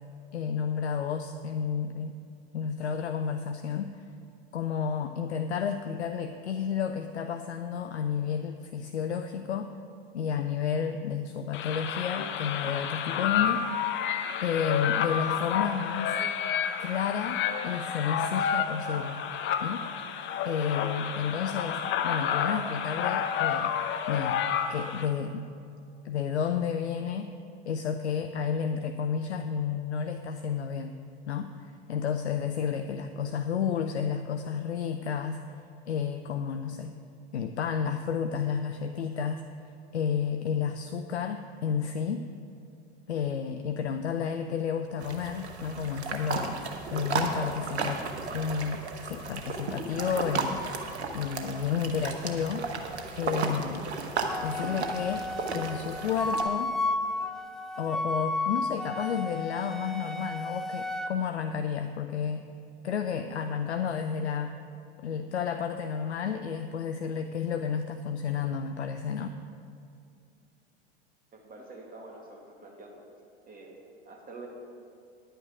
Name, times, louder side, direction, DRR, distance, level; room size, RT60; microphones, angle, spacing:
voice 1, 0.3-2.1 2.5-4.1 4.5-9.7 10.1-14.0 14.4-16.2 16.8-19.2 19.6-19.9 20.4-23.7 24.1-24.4 24.7-25.4 26.0-27.3 27.6-31.0 31.3-35.4 35.9-37.0 37.3-39.4 39.9-42.2 43.1-46.6 46.9-48.0 48.3-50.6 51.1-52.7 53.2-53.9 54.4-55.3 55.5-56.8 57.8-62.5 62.8-64.5 65.0-69.3, left 7 dB, 80° left, 8 dB, 0.5 m, -31 dB
sound 1, 11.5-25.1, left 8 dB, 35° left, 0.8 m, -30 dB
sound 2, 45.0-56.4, right 4 dB, 75° right, 1.1 m, -34 dB
Wind instrument woodwind instrument, 54.3-61.1, left 2 dB, ahead, 0.5 m, -33 dB
voice 2, 71.3-73.0 73.5-74.5, right 3 dB, 25° right, 0 dB, 2.0 m, -47 dB
10.5 x 8.9 x 5.0 m, 2.4 s
figure-of-eight pair, 80°, 33 cm